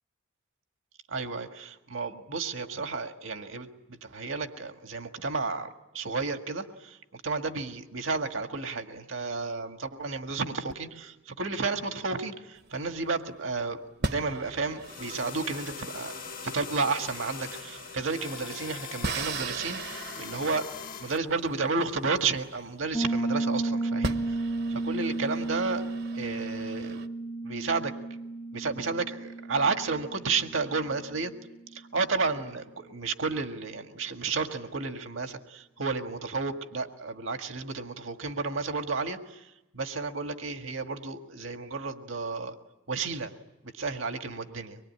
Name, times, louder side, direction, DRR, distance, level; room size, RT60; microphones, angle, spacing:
voice 1, 1.1-16.1 16.4-20.6 21.0-25.8 26.1-27.0 27.4-27.9 28.5-31.3 31.7-42.5 42.9-43.3 43.7-44.8, right 4 dB, 75° right, 6 dB, 1.8 m, -32 dB
sound 1, 12.6-13.3 14.0-23.2 23.6-23.7 24.0-27.1, right 3 dB, 55° right, 1.1 m, -39 dB
sound 2, 14.8-21.2, left 7 dB, 45° left, 1.4 m, -41 dB
Piano, 22.9-31.4, right 2 dB, 10° left, 0.8 m, -33 dB
24.5 x 22.5 x 9.7 m, 0.97 s
head